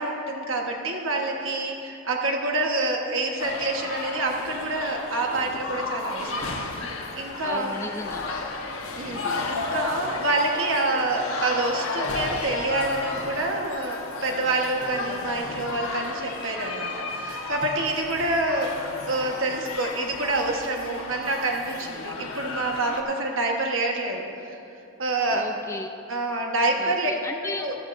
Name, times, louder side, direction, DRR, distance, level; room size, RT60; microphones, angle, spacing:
voice 1, 0.0-7.8 9.0-18.7 19.0-24.6 25.0-25.5 26.1-27.1 27.4-27.8, right 2 dB, 65° right, 1 dB, 1.3 m, -27 dB
sound 1, 3.4-23.0, left 3 dB, 75° left, 1.1 m, -33 dB
voice 2, 7.4-8.3 9.0-9.6 25.3-25.9 26.8-27.7, left 2 dB, 15° left, 5 dB, 0.3 m, -36 dB
14.0 x 13.5 x 2.7 m, 2.7 s
head